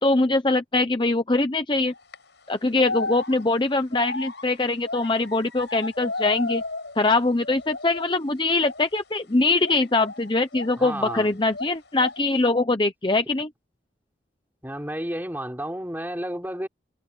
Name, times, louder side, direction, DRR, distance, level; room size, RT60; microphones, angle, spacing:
voice 1, 0.0-1.9 2.5-6.6 7.0-13.5, left 2 dB, 25° left, 0.8 m, -23 dB
sound 1, 1.8-2.2 2.8-7.1 7.4-8.2 8.6-8.8 9.6-11.3 11.5-12.3, left 3 dB, 70° left, 5.3 m, -34 dB
voice 2, 10.8-11.3 14.6-16.7, right 1 dB, 10° right, 5.4 m, -31 dB
head